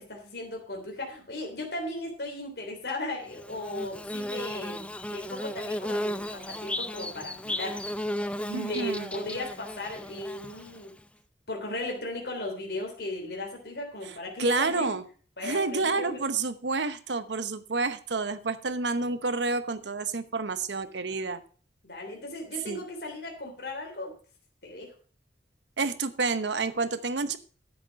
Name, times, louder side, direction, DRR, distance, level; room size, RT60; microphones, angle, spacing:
voice 1, 0.0-4.8 5.1-7.8 8.4-10.9 11.5-15.0 15.4-16.3 21.8-24.1 24.6-24.9, left 1 dB, 70° left, 1 dB, 3.4 m, -36 dB
Bird / Buzz, 3.3-11.0, left 1 dB, 5° left, 0.4 m, -35 dB
voice 2, 8.5-9.1 14.4-15.0 15.4-21.4 22.7-22.8 25.8-27.4, right 3 dB, 90° right, 13 dB, 0.9 m, -29 dB
11.0 x 8.0 x 5.3 m, 0.41 s
head